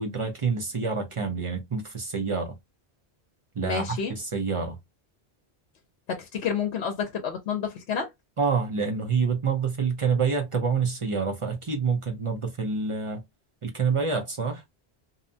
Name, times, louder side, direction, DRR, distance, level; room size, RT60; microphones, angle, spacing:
voice 1, 0.0-2.5 3.6-4.8 8.4-13.2 13.6-14.6, right 5 dB, 40° right, 0.5 m, -27 dB
voice 2, 3.6-4.1 6.1-8.1, left 7 dB, 75° left, 0.9 m, -29 dB
2.7 x 2.1 x 2.6 m
omnidirectional pair, 1.1 m